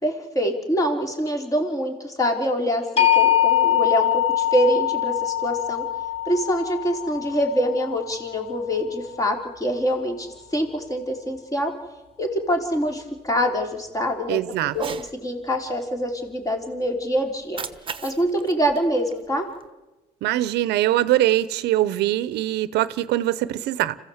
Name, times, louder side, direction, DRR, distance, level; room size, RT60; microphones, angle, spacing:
voice 1, 0.0-5.8 6.3-11.7 12.2-14.4 14.7-17.6 18.0-19.4, equal, 20° left, 4.0 m, -25 dB
sound 1, 3.0-8.9, left 11 dB, 35° left, 3.5 m, -23 dB
voice 2, 14.3-14.7 20.2-24.0, right 14 dB, 80° right, 0.8 m, -22 dB
Cat, 14.7-15.1 17.3-19.7, right 6 dB, 30° right, 1.2 m, -36 dB
26.5 x 15.5 x 8.0 m
cardioid pair, 110°, 17 cm